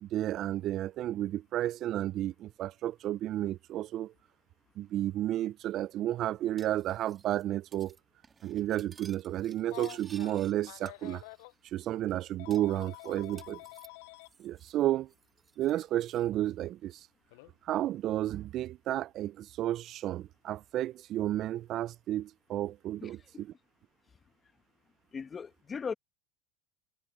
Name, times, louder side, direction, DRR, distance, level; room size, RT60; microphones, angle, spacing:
voice 1, 0.0-4.1 4.8-8.0 8.4-11.2 11.7-13.6 14.4-15.1 15.6-17.1 17.7-23.5, right 13 dB, 45° right, 0.4 m, -32 dB
Cutlery silverware, 6.6-7.4 7.7-8.0 8.2-10.5 10.9-11.6 11.9-12.0 12.5-14.8 15.1-16.3, right 5 dB, 20° right, 3.1 m, -57 dB
Telephone, 9.6-11.5 12.4-14.3 15.6-15.8 17.3-17.5, left 23 dB, 75° left, 0.5 m, -48 dB
voice 2, 23.0-23.4 25.1-25.9, left 5 dB, 25° left, 1.3 m, -39 dB
supercardioid pair, 120°, 0 cm